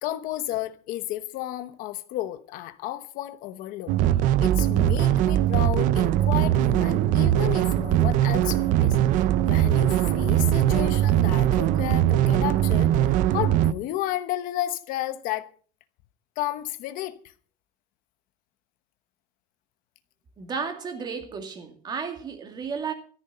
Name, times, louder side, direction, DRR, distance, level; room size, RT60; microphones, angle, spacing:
voice 1, 0.0-3.9 4.4-9.0 9.4-15.5 16.4-17.2, left 14 dB, 55° left, 1.0 m, -32 dB
sound 1, 3.9-13.7, right 12 dB, 50° right, 0.7 m, -21 dB
voice 2, 20.4-22.9, right 5 dB, 25° right, 2.3 m, -33 dB
13.5 x 13.0 x 5.6 m
cardioid pair, 175°, 16 cm